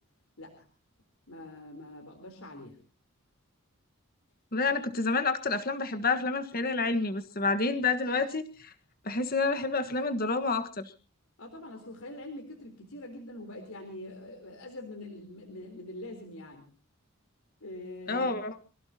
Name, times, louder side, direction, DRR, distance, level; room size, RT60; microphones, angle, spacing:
voice 1, 1.3-2.8 11.4-16.7 17.6-18.3, left 1 dB, 80° left, 3 dB, 3.8 m, -44 dB
voice 2, 4.5-8.7 9.0-10.9 18.1-18.5, left 3 dB, 40° left, 8 dB, 1.5 m, -29 dB
26.5 x 17.0 x 2.9 m, 0.34 s
head